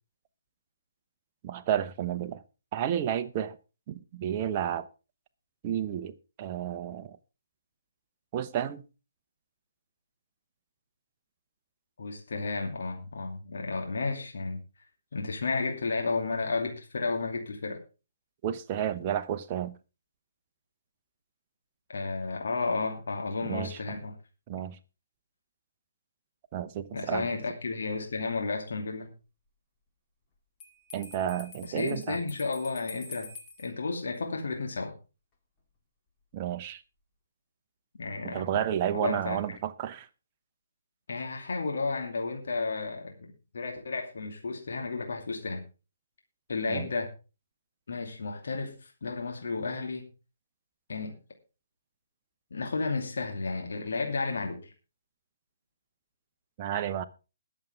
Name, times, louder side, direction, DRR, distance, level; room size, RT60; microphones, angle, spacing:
voice 1, 1.4-2.4 2.7-3.6 3.9-4.9 5.6-7.2 8.3-8.8 18.4-19.8 23.4-23.8 24.5-24.8 26.5-27.3 30.9-32.2 36.3-36.8 38.2-40.1 46.7-46.9 56.6-57.0, right 10 dB, 30° right, 0.9 m, -31 dB
voice 2, 12.0-14.6 15.1-17.8 21.9-24.1 26.9-29.1 31.7-33.3 33.6-34.9 37.9-38.6 38.9-39.4 41.1-45.6 46.5-47.1 47.9-50.1 50.9-51.2 52.5-54.7, left 3 dB, 55° left, 2.6 m, -32 dB
Bell, 30.6-33.7, left 3 dB, 20° left, 2.3 m, -47 dB
21.5 x 7.3 x 3.5 m
figure-of-eight pair, 135°, 0 cm